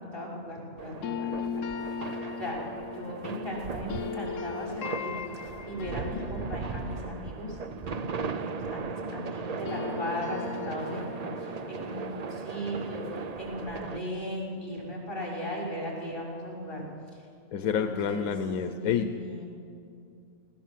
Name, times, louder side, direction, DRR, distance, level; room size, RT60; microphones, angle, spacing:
voice 1, 0.0-1.6 2.4-2.6 2.8-5.1 5.7-7.6 7.9-16.9 17.6-18.3 18.8-19.5, equal, 40° left, -4 dB, 6.3 m, -37 dB
sound 1, 0.8-14.0, right 5 dB, 45° right, 0.5 m, -38 dB
sound 2, 1.0-9.1 9.4-14.4, left 6 dB, 70° left, 1.0 m, -39 dB
voice 2, 17.5-19.1, left 7 dB, 90° left, 8 dB, 1.2 m, -28 dB
19.5 x 18.0 x 7.5 m, 2.5 s
omnidirectional pair, 1.4 m